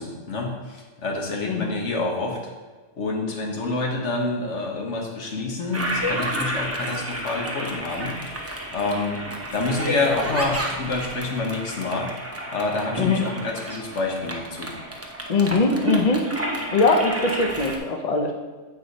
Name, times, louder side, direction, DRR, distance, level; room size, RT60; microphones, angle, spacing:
voice 1, 0.0-2.4 3.0-8.2 8.7-9.2 9.5-12.2 12.5-14.7, left 3 dB, 70° left, 0 dB, 1.4 m, -27 dB
Toilet flush, 5.7-17.8, right 1 dB, 15° right, 0.6 m, -30 dB
voice 2, 15.3-16.2 16.7-18.3, left 3 dB, 45° left, 3 dB, 0.6 m, -21 dB
8.1 x 4.8 x 4.0 m, 1.3 s
omnidirectional pair, 1.3 m